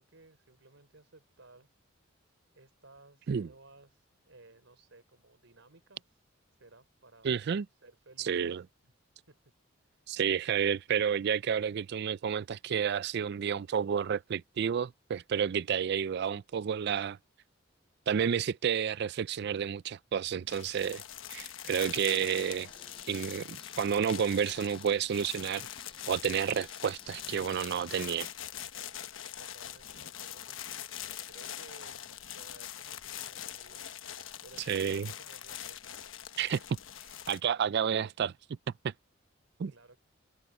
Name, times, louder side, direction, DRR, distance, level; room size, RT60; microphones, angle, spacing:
voice 1, 0.0-1.7 2.5-6.2 6.6-7.3 7.7-8.5 8.8-8.9 9.3-9.4 9.8-10.1 29.3-30.9 31.2-32.1 32.3-35.8 39.6-40.0, right 2 dB, 75° right, 4.7 m, -58 dB
voice 2, 7.2-7.7 8.2-8.6 10.1-17.2 18.1-21.0 21.3-22.7 23.1-25.7 26.1-28.3 34.7-35.1 36.4-36.6 37.3-38.3 38.8-38.9 39.6-39.7, right 7 dB, 55° right, 0.4 m, -30 dB
sound 1, 20.5-37.4, left 10 dB, 85° left, 1.1 m, -43 dB
sound 2, 21.8-28.0, left 6 dB, 25° left, 0.7 m, -56 dB
head